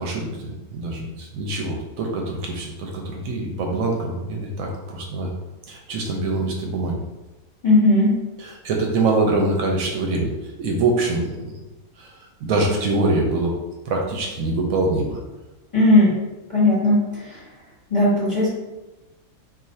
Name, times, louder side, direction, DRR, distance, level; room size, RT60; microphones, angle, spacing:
voice 1, 0.0-5.3 5.7-7.0 8.4-11.6 12.0-13.5 13.9-15.2, right 2 dB, 75° right, 0 dB, 0.9 m, -24 dB
voice 2, 7.6-8.1 15.7-16.1 16.5-17.4 17.9-18.5, left 1 dB, 25° left, -8 dB, 0.8 m, -17 dB
2.5 x 2.4 x 4.1 m, 1.1 s
omnidirectional pair, 1.6 m